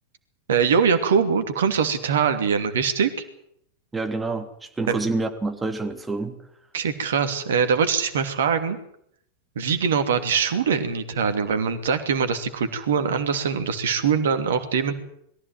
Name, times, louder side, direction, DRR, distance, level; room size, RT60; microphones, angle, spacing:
voice 1, 0.5-3.1 4.9-5.0 6.7-8.8 9.6-14.9, right 6 dB, 60° right, 2.7 m, -22 dB
voice 2, 3.9-6.3, right 3 dB, 10° right, 3.2 m, -27 dB
22.0 x 15.0 x 9.5 m
figure-of-eight pair, 90°, 0 cm